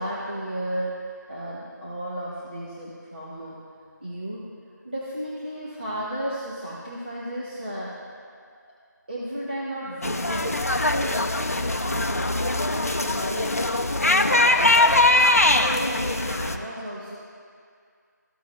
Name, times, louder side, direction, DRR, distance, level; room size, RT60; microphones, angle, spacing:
voice 1, 0.0-3.6 4.0-4.4 4.8-7.9 9.1-11.3 11.8-13.6 14.0-14.9 15.7-17.2, right 1 dB, 30° right, -8 dB, 1.2 m, -33 dB
sound 1, 10.0-16.6, left 2 dB, 50° left, 0.6 m, -22 dB
15.0 x 7.2 x 2.3 m, 2.2 s
figure-of-eight pair, 180°, 10 cm